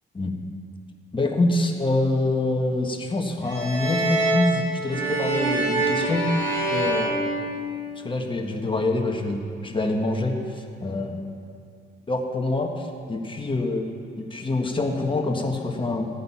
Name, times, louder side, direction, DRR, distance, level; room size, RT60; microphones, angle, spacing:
voice 1, 1.1-6.3 6.7-7.3 8.0-11.2 12.1-13.8 14.2-16.1, left 2 dB, 25° left, 3 dB, 1.5 m, -25 dB
sound 1, 3.4-8.0, right 2 dB, 85° right, 3.8 m, -25 dB
15.5 x 9.3 x 5.8 m, 2.4 s
cardioid pair, 90°, 20 cm